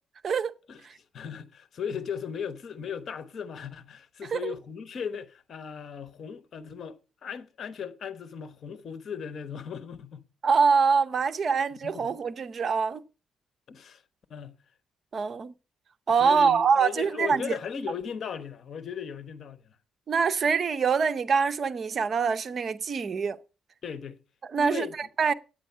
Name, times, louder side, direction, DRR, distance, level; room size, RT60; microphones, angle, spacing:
voice 1, 0.7-10.3 11.8-12.1 13.7-14.0 14.3-14.6 16.2-19.8 23.8-24.2 24.5-24.9, left 7 dB, 55° left, 1.0 m, -37 dB
voice 2, 10.4-13.0 15.1-15.5 16.1-17.6 20.1-23.4 24.5-25.3, right 5 dB, 45° right, 0.8 m, -24 dB
9.2 x 9.1 x 5.6 m
cardioid pair, 90°, 0 cm